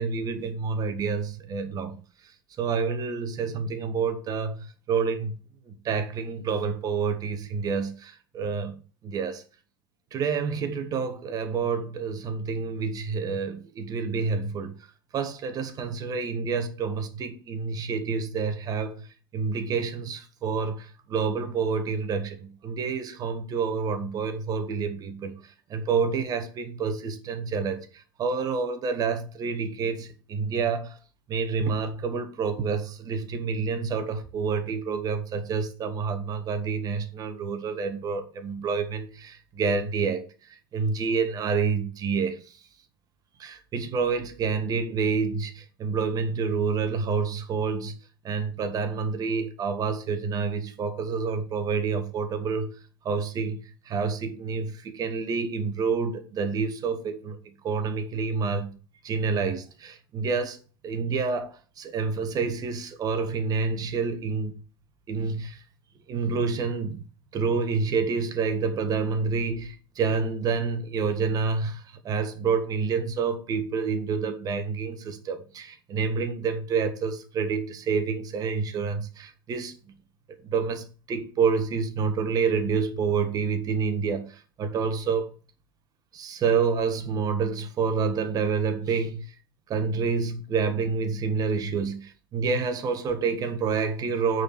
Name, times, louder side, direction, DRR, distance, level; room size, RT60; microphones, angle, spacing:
voice 1, 0.0-2.0 2.6-5.3 5.7-9.4 10.1-14.7 15.1-19.0 19.3-25.4 25.7-31.0 31.3-40.2 40.7-42.4 43.4-47.9 48.2-52.7 53.0-53.6 53.9-57.4 57.6-58.8 59.0-60.6 60.8-61.5 61.8-64.6 65.1-65.6 66.1-67.0 67.3-79.7 80.4-85.3 86.1-89.2 89.7-94.4, right 5 dB, 30° right, 1.5 m, -28 dB
9.0 x 4.5 x 5.1 m
figure-of-eight pair, 80°, 12 cm